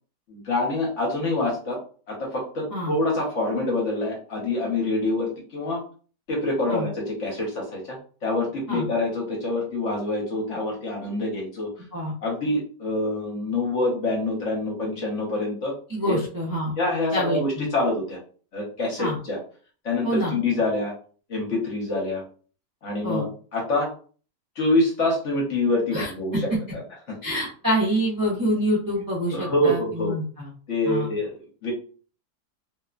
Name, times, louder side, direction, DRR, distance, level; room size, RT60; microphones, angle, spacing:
voice 1, 0.3-1.8 2.1-5.8 6.3-8.0 8.2-11.7 12.2-15.7 16.0-16.2 16.8-18.2 18.5-19.4 19.8-20.9 21.3-22.2 22.8-23.9 24.6-26.5 29.3-30.1 30.7-31.3 31.6-31.7, left 2 dB, 55° left, -2 dB, 1.0 m, -26 dB
voice 2, 15.9-16.7 17.1-17.7 19.0-19.2 20.0-20.3 23.0-23.3 25.9-26.1 27.2-30.5 30.9-31.1, equal, 35° right, -6 dB, 0.3 m, -26 dB
2.9 x 2.1 x 2.4 m, 0.41 s
omnidirectional pair, 1.7 m